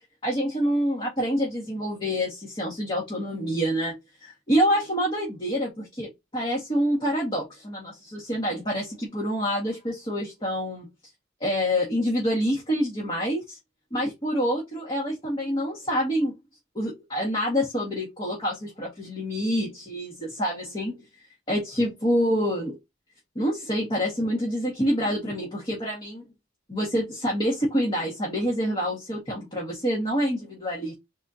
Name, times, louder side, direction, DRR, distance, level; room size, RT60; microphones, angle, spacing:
voice 1, 0.2-10.9 11.4-13.6 13.9-16.3 16.8-21.0 21.5-22.8 23.4-26.2 26.7-30.9, equal, 25° left, 1.7 m, -27 dB
4.2 x 4.1 x 2.8 m
head